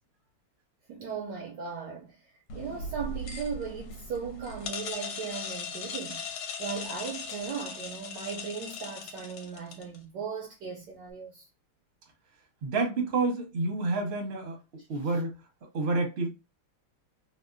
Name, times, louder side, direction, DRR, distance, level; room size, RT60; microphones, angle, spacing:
voice 1, 0.9-6.2 6.6-11.5 14.9-15.1, right 6 dB, 75° right, 1.0 m, -37 dB
sound 1, 2.5-10.0, left 4 dB, 75° left, 1.4 m, -39 dB
voice 2, 12.6-14.6 14.9-15.3 15.7-16.3, right 3 dB, 50° right, 0.7 m, -28 dB
3.5 x 2.1 x 2.5 m
omnidirectional pair, 2.4 m